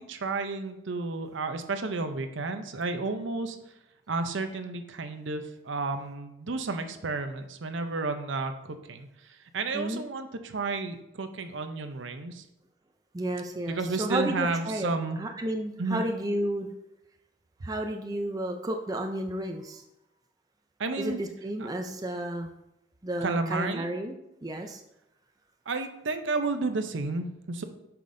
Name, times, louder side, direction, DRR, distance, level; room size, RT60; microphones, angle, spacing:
voice 1, 0.0-3.6 4.1-12.4 13.7-15.2 15.8-16.0 20.8-21.2 21.6-21.7 23.2-23.9 25.7-27.6, right 3 dB, 75° right, 8 dB, 0.6 m, -32 dB
voice 2, 13.1-16.7 17.6-19.8 21.0-22.5 23.0-24.2 24.4-24.8, right 1 dB, 20° right, 4 dB, 0.4 m, -32 dB
8.3 x 5.9 x 2.6 m, 0.87 s
head